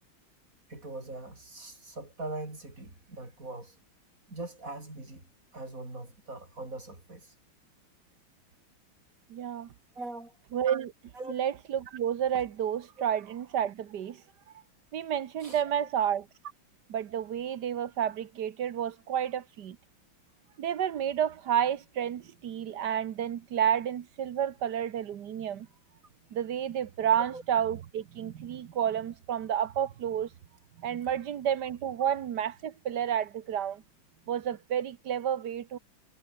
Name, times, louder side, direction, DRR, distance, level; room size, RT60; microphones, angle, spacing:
voice 1, 0.7-3.8 4.3-5.3 5.5-7.3 10.0-10.4 11.1-11.3 15.4-15.9 27.3-27.4, right 2 dB, 40° right, 7.1 m, -41 dB
voice 2, 9.3-9.7 10.5-10.9 11.3-14.2 14.9-16.2 16.9-19.8 20.6-25.7 26.3-30.3 30.8-33.8 34.3-35.8, right 9 dB, 60° right, 1.5 m, -30 dB
omnidirectional pair, 2.2 m